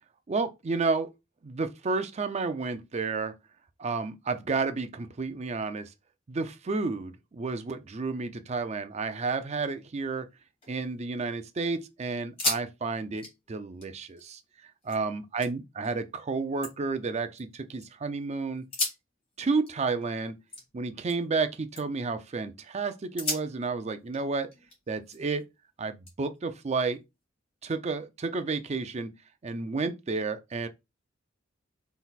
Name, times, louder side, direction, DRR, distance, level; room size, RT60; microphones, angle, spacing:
voice 1, 0.3-1.1 1.4-3.4 3.8-5.9 6.3-10.3 10.7-18.6 19.4-20.4 20.7-24.5 24.9-25.4 25.8-27.0 27.6-29.1 29.4-30.7, right 4 dB, 35° right, 0.4 m, -31 dB
sound 1, 10.4-11.4 11.7-11.8 12.2-12.7 13.0-15.0 15.4-15.9 16.3-17.9 18.6-21.4 21.7-22.1 22.6-22.7 23.2-25.4 26.1-27.2, left 2 dB, 30° left, 2.1 m, -37 dB
4.0 x 3.9 x 2.4 m
head